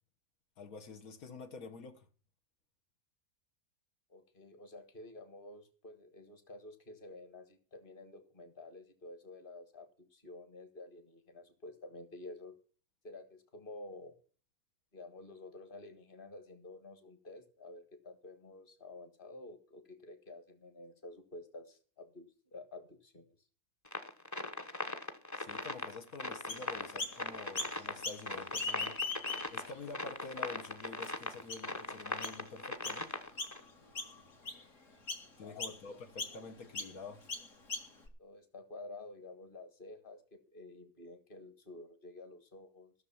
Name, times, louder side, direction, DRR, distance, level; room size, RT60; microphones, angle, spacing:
voice 1, 0.6-2.1 25.4-29.1 29.5-33.1 35.4-37.3, left 4 dB, 80° left, 1.7 m, -48 dB
voice 2, 4.1-12.5 13.0-14.1 14.9-23.3 35.4-35.8 36.3-36.4 38.2-42.9, left 2 dB, 40° left, 1.8 m, -51 dB
sound 1, 23.8-33.6, left 2 dB, 15° left, 0.8 m, -40 dB
Chirp tweet, 26.5-27.2 27.5-28.2 28.5-29.7 30.2-30.3 31.0-31.1 31.5-31.8 32.2-32.4 32.8-33.0 33.4-33.7 33.9-34.6 35.1-35.3 35.6-35.8 36.2-36.4 36.7-36.9 37.3-38.1, left 3 dB, 60° left, 2.4 m, -39 dB
14.5 x 6.6 x 7.2 m
omnidirectional pair, 1.5 m